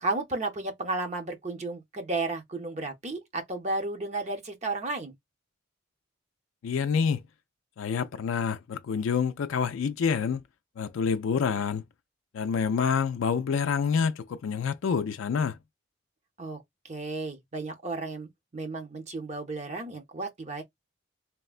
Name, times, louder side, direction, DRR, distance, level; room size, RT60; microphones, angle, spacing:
voice 1, 0.0-5.1 16.4-20.6, right 2 dB, 35° right, 0.7 m, -33 dB
voice 2, 6.6-7.2 7.8-10.4 10.8-11.8 12.3-15.6, left 6 dB, 80° left, 0.4 m, -27 dB
3.5 x 2.1 x 2.3 m
head